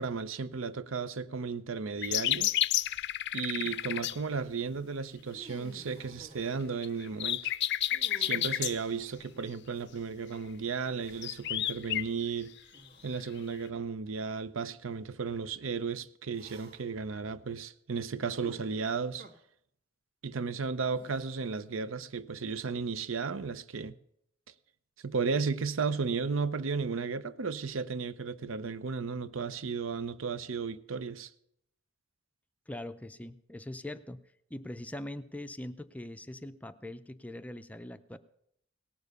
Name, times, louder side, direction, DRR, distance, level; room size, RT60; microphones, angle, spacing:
voice 1, 0.0-2.5 3.3-7.5 8.2-12.6 13.0-19.3 20.2-24.0 25.0-31.3, right 5 dB, 75° right, 0.7 m, -34 dB
sound 1, 2.0-4.2 6.8-8.7 11.1-12.1 13.4-13.5, left 13 dB, 60° left, 0.5 m, -30 dB
sound 2, 3.5-4.0 5.2-6.8 7.9-10.2 11.0-11.6 12.7-13.2 14.1-14.2 16.3-17.0 18.3-19.3 20.9-21.7, right 2 dB, 50° right, 1.7 m, -53 dB
voice 2, 32.7-34.2 34.5-38.2, left 1 dB, 5° left, 0.5 m, -42 dB
18.0 x 7.1 x 6.7 m
head